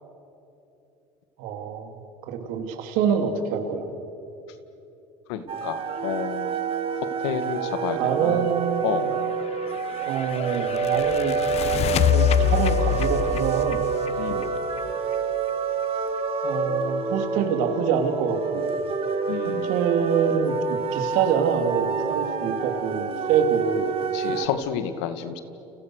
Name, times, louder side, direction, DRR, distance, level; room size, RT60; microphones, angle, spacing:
voice 1, 1.4-3.9 8.0-8.8 10.0-11.4 11.9-13.8 16.4-18.7 19.6-23.9, right 7 dB, 70° right, 5 dB, 3.4 m, -26 dB
voice 2, 5.3-6.6 7.2-8.4 8.8-9.1 11.9-12.1 14.2-14.5 19.3-19.7 24.1-25.4, left 9 dB, 85° left, 9 dB, 2.0 m, -30 dB
sound 1, 5.5-24.5, right 5 dB, 40° right, 2.2 m, -28 dB
sound 2, 9.4-15.1, left 11 dB, 50° left, 1.0 m, -26 dB
30.0 x 29.5 x 6.6 m, 2.9 s
supercardioid pair, 100°, 14 cm